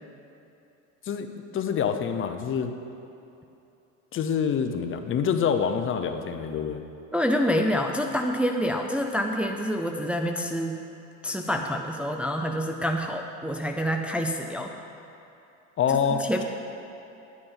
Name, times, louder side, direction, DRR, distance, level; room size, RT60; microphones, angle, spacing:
voice 1, 1.0-2.7 4.1-6.8 15.8-16.4, left 7 dB, 35° left, 7 dB, 0.8 m, -26 dB
voice 2, 7.1-10.8 11.2-14.7 16.2-16.4, equal, 5° right, 2 dB, 0.6 m, -27 dB
10.5 x 9.6 x 5.7 m, 2.8 s
cardioid pair, 120°, 34 cm